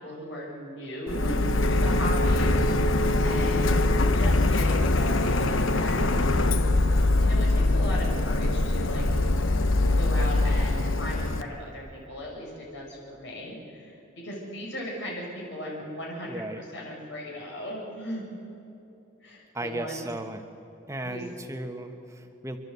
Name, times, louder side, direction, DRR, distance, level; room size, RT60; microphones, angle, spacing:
voice 1, 0.0-3.9 4.1-6.3 7.2-9.0 10.0-18.2 19.2-20.0 21.0-21.2, equal, 65° left, -3 dB, 6.0 m, -37 dB
Printer, 1.1-11.4, left 2 dB, 90° left, 1.1 m, -23 dB
voice 2, 16.2-16.6 19.5-20.4 20.9-22.6, right 1 dB, 15° right, 6 dB, 1.3 m, -35 dB
30.0 x 12.0 x 8.2 m, 2.8 s
head